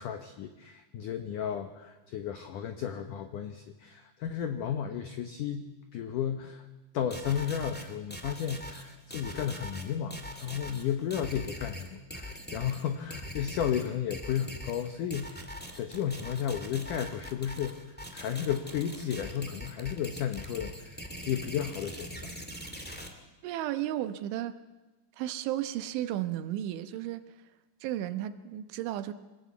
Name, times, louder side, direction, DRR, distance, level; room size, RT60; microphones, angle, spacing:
voice 1, 0.0-5.7 5.9-6.6 6.9-17.8 18.1-22.3, left 9 dB, 90° left, 7 dB, 1.8 m, -33 dB
sound 1, 7.1-23.1, equal, 10° left, 0.4 m, -42 dB
voice 2, 23.4-24.6 25.2-27.2 27.8-29.1, right 13 dB, 85° right, 10 dB, 3.5 m, -33 dB
25.5 x 19.5 x 8.5 m, 1.2 s
omnidirectional pair, 5.3 m